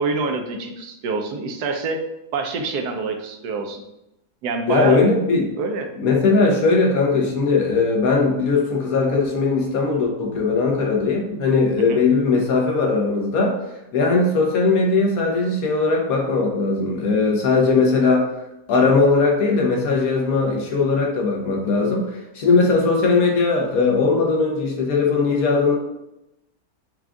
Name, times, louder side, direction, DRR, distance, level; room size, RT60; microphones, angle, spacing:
voice 1, 0.0-2.1 2.3-3.8 4.4-5.1 5.6-5.9 11.9-12.0, right 4 dB, 80° right, 4 dB, 1.2 m, -26 dB
voice 2, 4.7-5.5 6.0-13.6 13.9-18.3 18.7-25.8, left 4 dB, 65° left, 0 dB, 1.3 m, -19 dB
4.8 x 2.4 x 3.6 m, 0.89 s
omnidirectional pair, 1.7 m